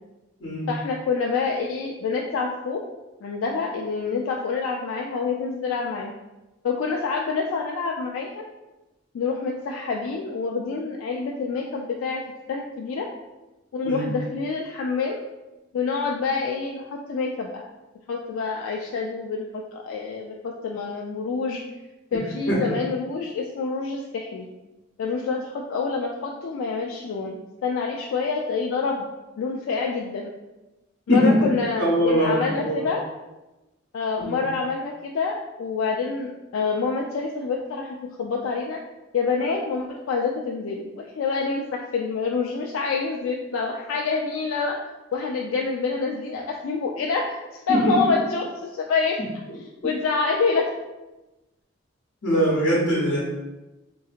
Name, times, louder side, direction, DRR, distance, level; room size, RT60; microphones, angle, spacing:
voice 1, 0.7-2.8 3.2-6.1 6.6-8.4 9.1-12.2 12.5-13.1 13.7-15.2 15.7-17.6 18.1-21.6 22.1-24.5 25.0-29.1 29.4-30.3 31.1-33.0 33.9-38.8 39.1-44.8 45.1-49.2 49.8-50.7, left 4 dB, 80° left, 0 dB, 0.3 m, -27 dB
voice 2, 31.8-32.9 34.2-34.4 47.7-47.8 52.2-53.2, equal, 60° left, -7 dB, 0.9 m, -22 dB
3.8 x 2.7 x 2.4 m, 1.0 s
head